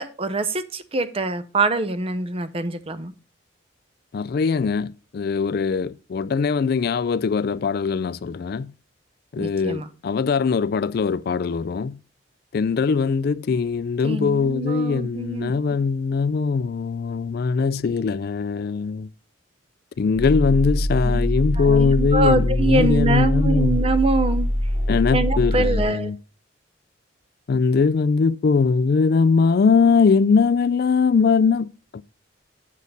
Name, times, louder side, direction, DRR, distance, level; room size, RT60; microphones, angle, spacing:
voice 1, 0.0-3.1 9.4-9.9 14.0-15.5 21.0-21.4 21.6-24.5 25.1-26.1, right 2 dB, 30° right, 0.7 m, -24 dB
voice 2, 4.1-8.7 9.3-12.0 12.5-19.1 20.0-23.8 24.9-26.2 27.5-32.0, left 5 dB, 50° left, 0.3 m, -21 dB
sound 1, 20.1-25.8, equal, 60° right, 4.6 m, -23 dB
8.3 x 6.4 x 5.3 m
head